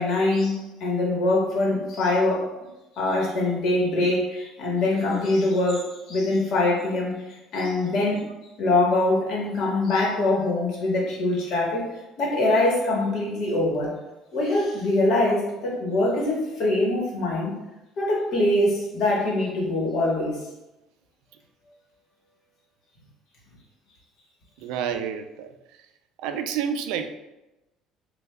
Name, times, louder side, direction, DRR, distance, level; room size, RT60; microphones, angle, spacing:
voice 1, 0.0-2.5 3.0-8.3 8.6-11.9 12.2-13.9 14.3-17.6 18.0-20.4, left 2 dB, 50° left, -3 dB, 1.2 m, -23 dB
voice 2, 24.6-25.5 26.2-27.1, right 8 dB, 80° right, 8 dB, 0.3 m, -29 dB
6.7 x 2.3 x 2.2 m, 0.98 s
cardioid pair, 170°, 0 cm